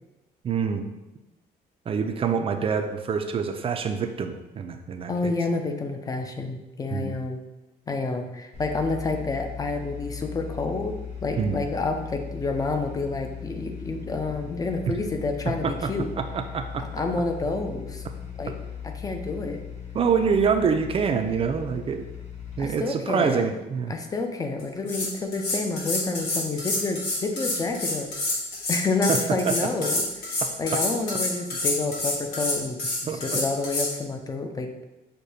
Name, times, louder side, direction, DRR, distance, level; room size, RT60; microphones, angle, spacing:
voice 1, 0.4-0.8 1.9-5.3 6.9-7.2 11.4-11.6 15.6-15.9 16.2-16.8 19.9-22.0 22.6-23.9 29.1-29.2 29.5-29.6 30.7-30.8 33.1-33.2, right 6 dB, 35° right, 6 dB, 0.4 m, -26 dB
voice 2, 5.1-7.4 7.9-16.1 16.8-18.0 18.4-18.5 18.8-19.6 22.6-23.5 23.9-28.1 28.7-34.7, left 3 dB, 20° left, 5 dB, 0.5 m, -29 dB
sound 1, 8.5-22.7, left 8 dB, 40° left, 1.0 m, -38 dB
sound 2, 24.6-24.7 24.9-33.9, left 2 dB, 65° left, 1.3 m, -27 dB
6.4 x 2.2 x 2.7 m, 1.0 s
cardioid pair, 110°, 17 cm